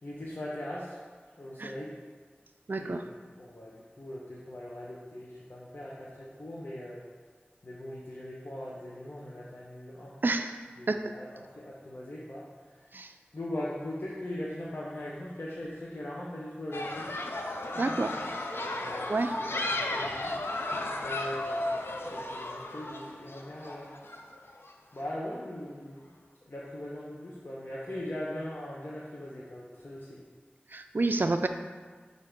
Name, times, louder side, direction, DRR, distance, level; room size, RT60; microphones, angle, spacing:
voice 1, 0.0-1.0 1.4-2.0 2.7-3.1 3.4-7.0 7.6-10.2 10.8-12.9 13.3-17.2 17.7-18.3 18.7-20.3 21.0-21.7 22.0-24.0 24.9-26.1 26.4-30.2, left 1 dB, 60° left, -7 dB, 0.9 m, -40 dB
voice 2, 2.7-3.0 10.2-10.6 10.9-11.1 12.9-13.1 17.8-18.1 19.1-19.3 30.7-31.5, right 3 dB, 55° right, 7 dB, 0.3 m, -28 dB
sound 1, 16.7-24.7, left 2 dB, 80° left, 0.5 m, -34 dB
7.6 x 2.8 x 5.1 m, 1.5 s
wide cardioid pair, 50°, 4 cm